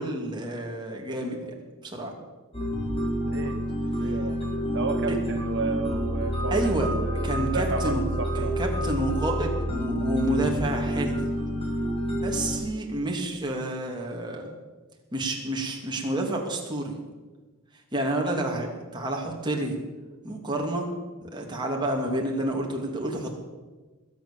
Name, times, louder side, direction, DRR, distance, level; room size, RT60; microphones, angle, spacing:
voice 1, 0.0-1.6 1.8-2.1 4.0-4.1 5.1-5.2 6.5-6.9 7.2-8.0 8.3-11.2 12.1-14.5 15.1-17.0 17.9-19.8 20.2-20.9 21.2-23.3, right 1 dB, 20° right, 0 dB, 2.8 m, -29 dB
sound 1, 2.5-12.6, equal, 25° left, 3.9 m, -28 dB
voice 2, 3.3-3.6 4.0-4.4 4.7-8.5, right 3 dB, 55° right, 5 dB, 1.0 m, -32 dB
21.0 x 9.3 x 7.4 m, 1.3 s
head